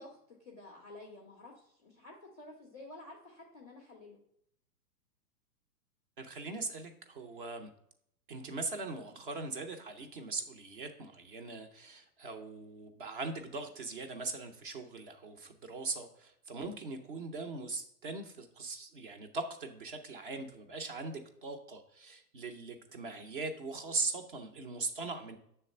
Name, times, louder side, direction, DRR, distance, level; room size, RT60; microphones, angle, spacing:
voice 1, 0.0-4.2, left 2 dB, 10° left, -2 dB, 0.3 m, -51 dB
voice 2, 6.2-7.7 8.3-25.4, right 3 dB, 35° right, 7 dB, 0.6 m, -40 dB
7.4 x 3.3 x 5.4 m, 0.73 s
hypercardioid pair, 150°, 49 cm